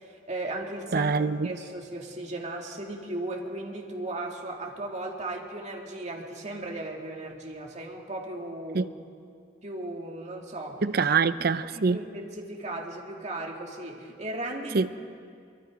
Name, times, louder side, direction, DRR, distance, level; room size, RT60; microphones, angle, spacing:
voice 1, 0.0-1.1 1.4-8.9 9.6-10.8 11.6-14.9, right 2 dB, 40° right, 2.4 m, -36 dB
voice 2, 0.9-1.5 8.7-8.9 10.8-12.0 14.7-14.9, right 4 dB, 55° right, 0.6 m, -24 dB
23.5 x 23.5 x 5.2 m
head